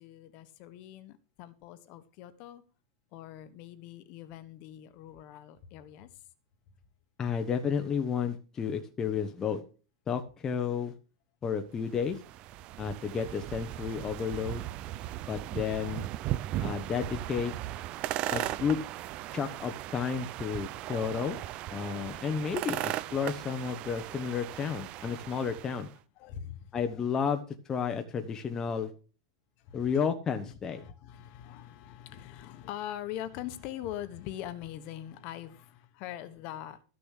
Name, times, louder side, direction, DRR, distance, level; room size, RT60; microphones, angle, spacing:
voice 1, 0.0-2.6 3.1-6.1 26.2-26.7 29.7-30.0 30.7-36.8, left 11 dB, 40° left, 1.3 m, -42 dB
voice 2, 7.2-9.6 10.1-10.9 11.4-12.2 12.8-14.6 15.3-16.1 16.6-17.5 18.3-18.8 19.3-21.4 21.7-25.9 26.7-27.4 27.7-28.9 29.7-30.8, left 6 dB, 15° left, 1.0 m, -32 dB
sound 1, 11.9-25.9, right 14 dB, 35° right, 0.5 m, -37 dB
14.0 x 6.8 x 6.6 m
supercardioid pair, 165°, 3 cm